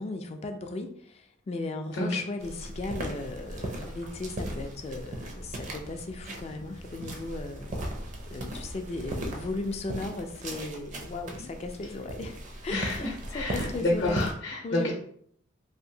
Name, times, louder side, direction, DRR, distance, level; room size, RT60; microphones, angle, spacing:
voice 1, 0.0-7.9 8.3-12.4 12.6-13.1 13.3-14.3 14.6-14.9, left 2 dB, 30° left, 6 dB, 0.3 m, -36 dB
sound 1, 2.4-14.3, right 1 dB, 40° right, 0.5 m, -38 dB
voice 2, 12.7-14.9, left 2 dB, 55° left, -2 dB, 0.7 m, -29 dB
2.9 x 2.5 x 2.7 m, 0.65 s
head